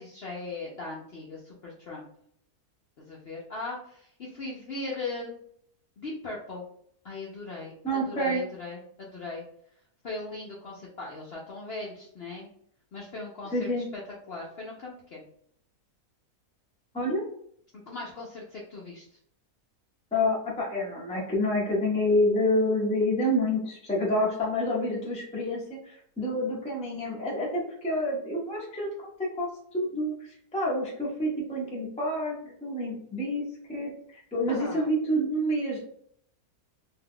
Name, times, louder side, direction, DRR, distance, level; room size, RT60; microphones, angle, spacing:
voice 1, 0.0-2.1 3.0-5.4 6.0-6.6 7.0-9.4 10.0-12.5 12.9-14.0 14.3-15.2 17.9-19.1 34.5-34.9, left 3 dB, 60° left, -4 dB, 0.6 m, -39 dB
voice 2, 7.8-8.4 13.5-13.9 16.9-17.2 20.1-28.9 29.4-30.1 30.5-33.4 33.7-35.8, left 1 dB, 10° left, -4 dB, 0.4 m, -28 dB
2.7 x 2.3 x 3.6 m, 0.66 s
omnidirectional pair, 1.7 m